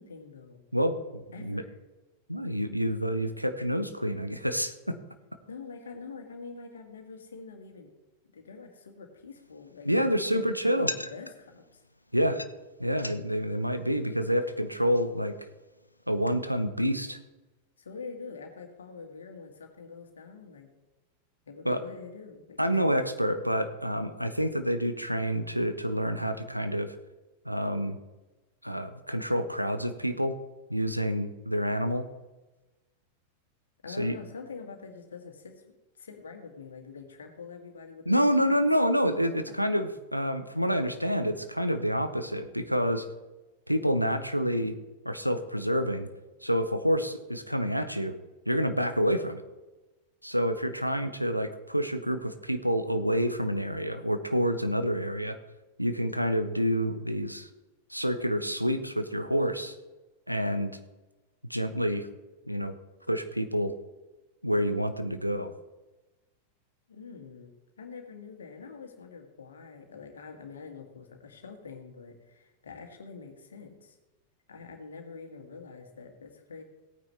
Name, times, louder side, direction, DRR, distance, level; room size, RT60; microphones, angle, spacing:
voice 1, 0.0-0.6 1.3-1.7 5.5-7.9 8.3-11.8 17.8-20.7 21.5-22.8 33.8-38.2 66.9-74.0 74.5-76.6, left 5 dB, 70° left, 4 dB, 1.9 m, -45 dB
voice 2, 0.7-1.6 2.3-5.0 9.8-10.9 12.1-12.4 12.8-15.3 16.1-17.2 21.6-21.8 22.6-27.0 27.4-28.0 28.6-30.4 30.7-32.1 34.0-34.2 38.1-43.1 43.7-44.8 45.0-46.1 46.4-48.2 48.5-49.4 50.2-55.4 55.8-57.5 57.9-59.7 60.3-60.7 61.5-62.1 62.5-62.7 63.1-63.7 64.4-65.5, equal, 90° right, 9 dB, 0.9 m, -28 dB
sound 1, 9.3-16.6, left 1 dB, 85° left, 0.5 m, -44 dB
17.0 x 9.3 x 3.4 m, 1.1 s
figure-of-eight pair, 90°, 0 cm